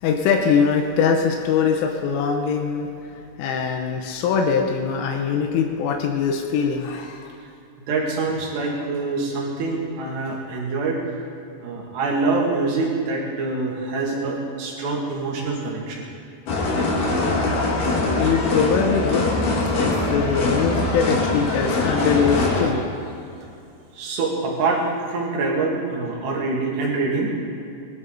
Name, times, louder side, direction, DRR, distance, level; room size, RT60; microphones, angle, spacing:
voice 1, 0.0-7.3 18.2-19.3 19.8-22.9, left 6 dB, 90° left, 3 dB, 3.5 m, -22 dB
voice 2, 7.9-11.0 11.6-16.0 23.9-27.3, right 3 dB, 65° right, -2 dB, 4.1 m, -25 dB
sound 1, 16.5-22.7, left 2 dB, 55° left, 3.1 m, -22 dB
21.0 x 12.5 x 4.0 m, 2.6 s
omnidirectional pair, 5.5 m